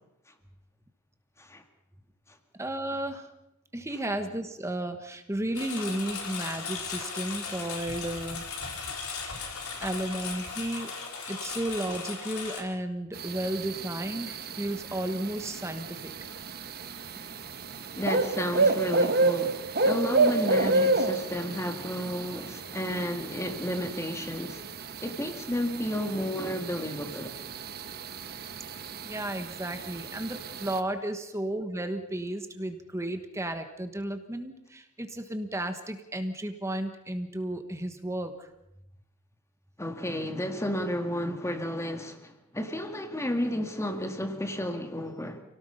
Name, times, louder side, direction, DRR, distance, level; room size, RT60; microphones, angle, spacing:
voice 1, 2.6-3.3 3.7-9.0 9.8-10.9 11.3-16.1 29.0-38.5, right 1 dB, 15° right, 1.3 m, -33 dB
Engine, 5.5-12.6, left 5 dB, 75° left, 4.4 m, -37 dB
sound 1, 13.1-30.8, right 3 dB, 45° right, 1.2 m, -30 dB
voice 2, 18.0-24.6 25.0-27.4 39.8-45.4, equal, 15° left, 1.9 m, -32 dB
29.0 x 18.0 x 5.7 m
head